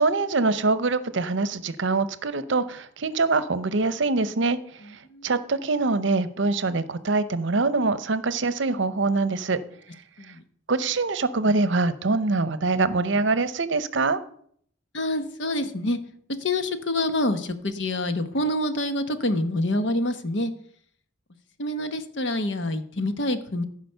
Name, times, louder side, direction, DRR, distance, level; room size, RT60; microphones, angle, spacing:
voice 1, 0.0-4.6 5.2-9.6 10.7-14.2, right 3 dB, 65° right, 14 dB, 0.7 m, -24 dB
voice 2, 14.9-16.0 16.4-20.5 21.6-23.6, left 1 dB, 65° left, 9 dB, 1.0 m, -26 dB
15.0 x 5.0 x 6.7 m, 0.63 s
head